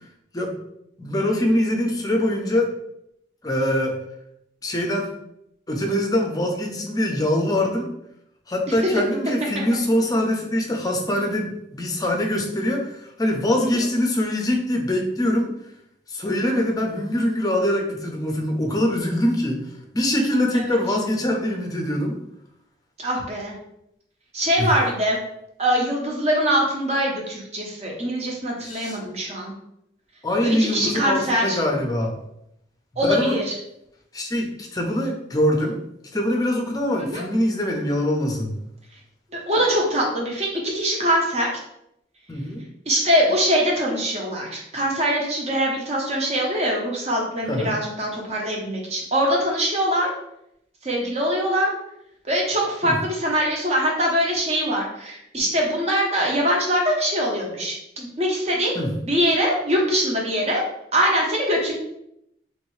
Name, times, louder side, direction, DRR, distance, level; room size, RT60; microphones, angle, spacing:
voice 1, 1.0-2.7 3.4-4.0 4.6-5.1 5.7-7.9 8.5-15.5 16.1-19.6 19.9-22.2 24.6-24.7 28.6-29.0 30.2-32.2 33.0-33.4 34.1-35.8 36.1-38.6 42.3-42.6 47.5-47.8 52.8-53.0 58.7-58.9, left 1 dB, 20° left, 2 dB, 0.5 m, -23 dB
voice 2, 23.0-23.5 24.3-25.2 25.6-29.5 30.4-31.6 33.0-33.4 37.0-37.2 39.5-41.5 42.9-50.1 50.8-51.7 52.3-60.6 60.9-61.7, equal, 35° right, -1 dB, 0.7 m, -23 dB
3.1 x 2.6 x 3.1 m, 0.78 s
head